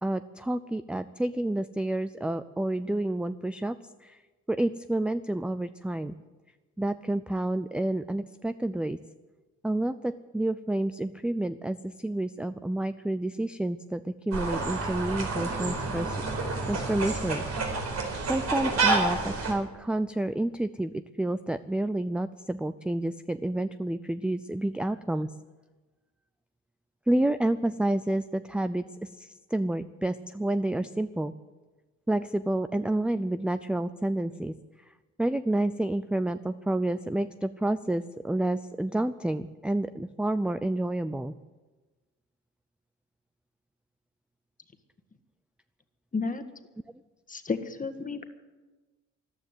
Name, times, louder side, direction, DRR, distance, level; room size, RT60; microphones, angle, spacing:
voice 1, 0.0-3.8 4.0-4.2 4.5-6.1 6.8-9.0 9.6-16.2 16.7-17.4 18.3-20.9 21.2-25.3 27.1-28.8 29.2-31.3 32.1-34.5 35.2-41.3, right 1 dB, 5° right, 12 dB, 0.4 m, -29 dB
sound 1, 14.3-19.5, right 3 dB, 60° right, 4.6 m, -29 dB
voice 2, 46.1-46.4 47.3-48.3, left 4 dB, 25° left, 8 dB, 1.6 m, -31 dB
14.0 x 12.0 x 8.1 m, 1.2 s
cardioid pair, 90°, 30 cm